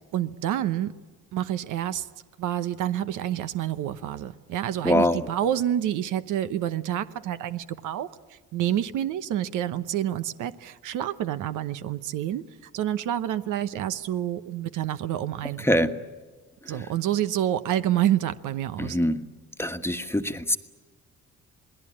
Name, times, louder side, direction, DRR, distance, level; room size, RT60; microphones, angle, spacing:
voice 1, 0.1-0.9 1.3-2.1 2.4-15.7 16.7-19.0, right 11 dB, 85° right, 12 dB, 1.0 m, -28 dB
voice 2, 4.8-5.3 15.6-15.9 16.7-16.8 18.8-19.2 19.6-20.6, left 1 dB, 10° left, 7 dB, 1.3 m, -24 dB
28.0 x 19.5 x 8.7 m, 1.3 s
cardioid pair, 90°, 30 cm